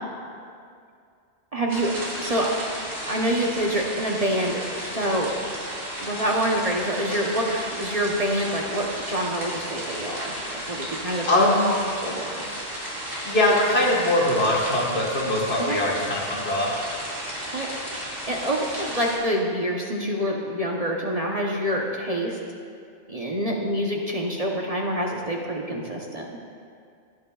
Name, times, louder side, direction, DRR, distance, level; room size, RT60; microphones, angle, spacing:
voice 1, 1.5-2.5 3.0-5.3 6.0-10.4 10.7-12.5 15.6-15.8 17.5-17.7 18.0-22.4 23.1-26.3, equal, 35° right, -1 dB, 0.9 m, -26 dB
sound 1, 1.7-19.2, equal, 55° right, 2.4 m, -34 dB
voice 2, 11.3-11.8 13.2-16.8, left 1 dB, 65° left, -3 dB, 1.8 m, -22 dB
17.5 x 9.5 x 2.4 m, 2.3 s
omnidirectional pair, 1.2 m